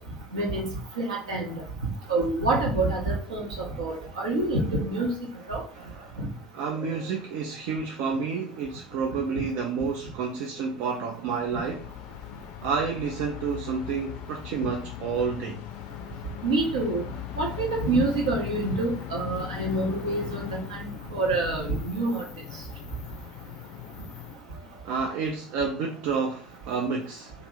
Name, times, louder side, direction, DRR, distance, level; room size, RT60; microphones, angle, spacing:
voice 1, 0.3-0.6 1.0-1.6 2.1-5.1 5.5-5.6 6.2-6.3 9.3-9.4 16.4-17.0 17.4-22.2, right 2 dB, 75° right, 1.0 m, -27 dB
voice 2, 5.8-6.1 6.5-11.9 12.6-15.6 24.8-27.3, right 5 dB, 55° right, 0.4 m, -30 dB
sound 1, 11.1-24.4, left 12 dB, 55° left, 0.4 m, -39 dB
2.9 x 2.5 x 3.1 m
figure-of-eight pair, 70°, 3 cm